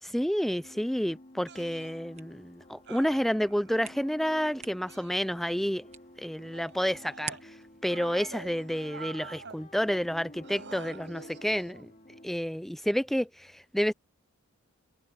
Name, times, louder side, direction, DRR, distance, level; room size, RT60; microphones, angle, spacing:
voice 1, 0.1-5.8 6.2-7.5 7.8-11.9 12.2-13.9, equal, ahead, 0.4 m, -30 dB
sound 1, 0.6-12.3, left 1 dB, 35° left, 2.5 m, -51 dB
sound 2, 1.5-1.9 2.9-3.8 4.9-5.7 6.5-7.4 7.9-9.6 10.4-12.0 13.1-13.3, right 5 dB, 55° right, 6.7 m, -47 dB
sound 3, 2.1-7.8, right 8 dB, 30° right, 1.4 m, -49 dB
head